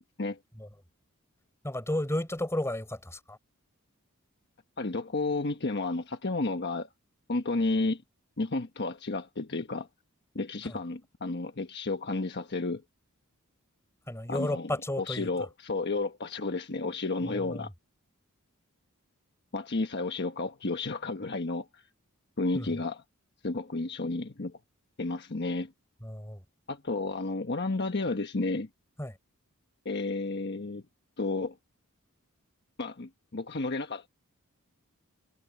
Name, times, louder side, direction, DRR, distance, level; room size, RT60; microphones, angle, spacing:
voice 1, 1.6-3.4 10.6-10.8 14.1-15.3 17.2-17.7 22.5-22.7 26.0-26.4 29.0-29.1, left 1 dB, 15° left, 4.7 m, -33 dB
voice 2, 4.8-6.9 7.3-8.0 8.4-9.9 10.3-12.8 14.3-14.7 15.0-17.7 19.5-21.8 22.4-23.0 23.4-24.6 25.0-25.7 26.7-28.7 29.8-30.8 31.2-31.6 32.8-34.1, left 3 dB, 50° left, 1.3 m, -32 dB
head